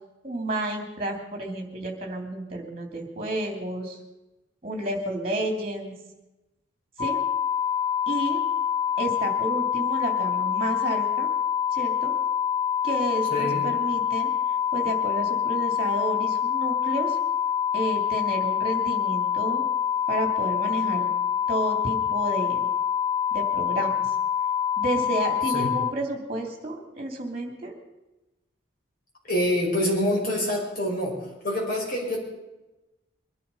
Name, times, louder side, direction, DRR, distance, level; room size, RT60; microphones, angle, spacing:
voice 1, 0.2-4.0 4.6-5.9 7.0-7.2 8.1-8.4 9.0-11.3 11.7-12.2 12.8-14.3 14.7-17.2 17.7-19.7 20.1-21.1 21.5-22.7 23.3-24.1 24.8-27.7, right 1 dB, 30° right, 3 dB, 2.9 m, -31 dB
sound 1, 7.0-25.9, left 8 dB, 20° left, 0.6 m, -26 dB
voice 2, 13.3-13.6 25.5-25.7 29.3-31.2 31.4-32.2, left 1 dB, 50° left, -2 dB, 5.6 m, -26 dB
22.5 x 11.0 x 5.6 m, 1.0 s
head